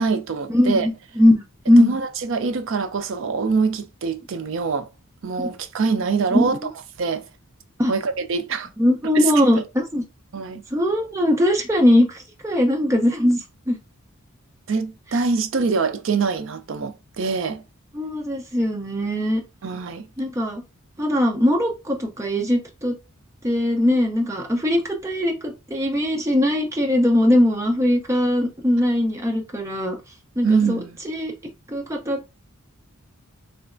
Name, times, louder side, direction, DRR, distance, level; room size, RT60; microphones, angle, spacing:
voice 1, 0.0-0.9 1.8-4.9 5.2-6.6 7.0-7.3 7.9-8.7 9.1-9.6 10.3-10.6 14.7-17.6 19.6-20.1 30.4-31.0, right 4 dB, 60° right, 0.4 m, -24 dB
voice 2, 0.5-1.9 5.4-5.5 6.3-6.6 7.8-7.9 8.8-10.0 10.7-13.4 13.7-13.8 17.9-19.4 20.2-20.6 21.0-23.0 23.4-30.0 30.4-30.8 31.1-31.3 31.7-32.4, left 1 dB, 15° right, 0.6 m, -20 dB
3.3 x 3.0 x 2.5 m
head